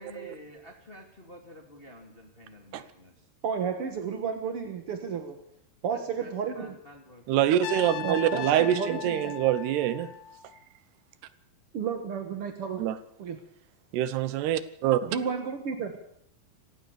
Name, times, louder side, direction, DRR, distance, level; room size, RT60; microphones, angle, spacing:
voice 1, 0.0-3.2 5.9-7.5, equal, 20° left, 3 dB, 1.8 m, -49 dB
voice 2, 3.4-5.4 5.8-6.7 8.0-9.3 11.7-12.8 13.2-13.4 15.1-16.0, right 6 dB, 60° right, 6 dB, 1.4 m, -32 dB
voice 3, 7.3-10.1 12.8-13.0 13.9-15.1, right 11 dB, 80° right, 14 dB, 3.0 m, -25 dB
Trumpet, 7.6-10.6, left 12 dB, 90° left, 3.6 m, -38 dB
26.0 x 16.0 x 7.0 m, 0.72 s
omnidirectional pair, 4.8 m